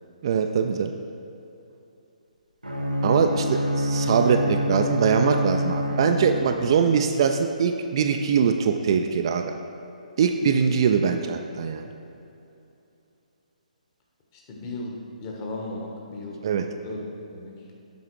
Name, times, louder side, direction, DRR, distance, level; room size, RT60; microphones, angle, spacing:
voice 1, 0.2-1.0 3.0-9.6 10.2-11.9 16.4-16.7, right 6 dB, 35° right, 6 dB, 0.3 m, -22 dB
Bowed string instrument, 2.6-6.8, equal, 85° right, 1.2 m, -26 dB
voice 2, 3.0-3.6 14.3-16.4 16.8-17.6, left 2 dB, 25° left, -2 dB, 1.1 m, -36 dB
7.9 x 4.8 x 4.6 m, 2.7 s
figure-of-eight pair, 135°, 4 cm